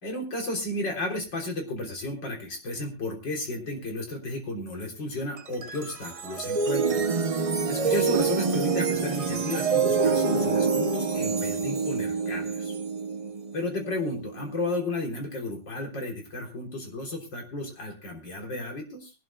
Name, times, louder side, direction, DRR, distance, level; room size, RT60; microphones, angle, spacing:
voice 1, 0.0-7.0 7.7-12.8 13.5-19.1, left 2 dB, 70° left, 2 dB, 4.2 m, -33 dB
sound 1, 5.4-14.6, right 5 dB, 50° right, 0.4 m, -27 dB
23.0 x 12.5 x 2.2 m, 0.28 s
omnidirectional pair, 2.0 m